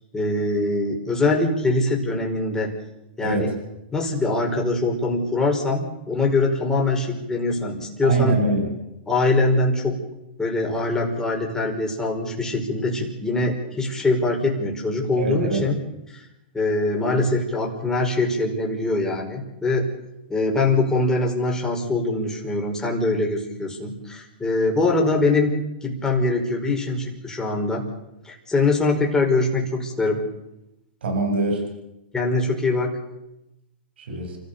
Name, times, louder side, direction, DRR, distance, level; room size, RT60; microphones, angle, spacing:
voice 1, 0.1-2.7 3.2-3.5 3.9-8.4 9.1-10.0 10.4-15.8 16.1-16.3 16.5-19.8 20.3-25.5 25.8-27.8 28.2-30.2 32.1-32.9, left 2 dB, 10° left, 0 dB, 5.4 m, -23 dB
voice 2, 3.2-3.5 8.0-8.7 15.2-15.7 31.0-31.6 34.0-34.4, right 2 dB, 80° right, 3 dB, 7.3 m, -23 dB
29.5 x 15.0 x 7.0 m, 0.91 s
hypercardioid pair, 125°, 6 cm